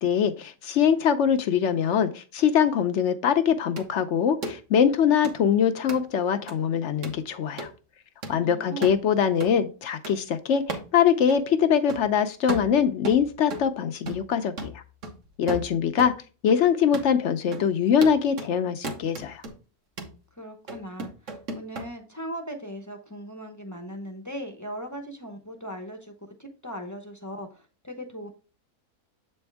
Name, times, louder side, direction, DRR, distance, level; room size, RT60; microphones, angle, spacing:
voice 1, 0.0-7.7 8.3-14.7 15.4-16.1 16.4-19.4, left 8 dB, 65° left, 9 dB, 0.8 m, -23 dB
sound 1, 3.8-3.9 4.4-4.6 5.2-5.4 5.9-6.0 6.5-6.6 7.0-7.2 7.6-7.7 8.2-8.4 8.8-9.0 9.4-9.5 10.0-10.2 10.7-10.9 11.3-11.4 11.9-12.1 12.5-13.7 14.1-14.3 14.6-16.2 16.5-16.6 16.9-17.1 17.5-17.7 18.0-18.5 18.8-19.5 20.0-20.2 20.7-21.9, right 2 dB, 55° right, 1.4 m, -35 dB
voice 2, 8.4-9.0 20.4-26.1 26.4-28.3, equal, 20° left, 4 dB, 0.6 m, -38 dB
7.7 x 4.4 x 3.4 m, 0.34 s
omnidirectional pair, 1.6 m